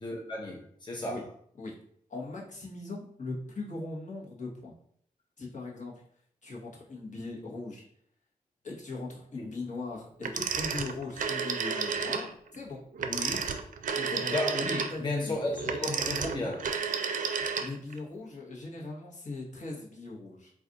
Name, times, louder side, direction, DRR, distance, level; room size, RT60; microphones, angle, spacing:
voice 1, 0.0-1.2 9.3-9.5 13.0-13.5 13.9-16.7, left 1 dB, 30° left, -2 dB, 0.8 m, -34 dB
voice 2, 2.1-4.7 5.4-5.9 6.4-7.8 8.6-12.8 14.1-14.4 14.9-15.5 17.6-20.5, left 3 dB, 55° left, -3 dB, 1.0 m, -39 dB
Telephone, 10.2-12.3 12.9-18.0, right 6 dB, 60° right, 0.4 m, -32 dB
2.4 x 2.4 x 3.9 m, 0.64 s
cardioid pair, 45°, 15 cm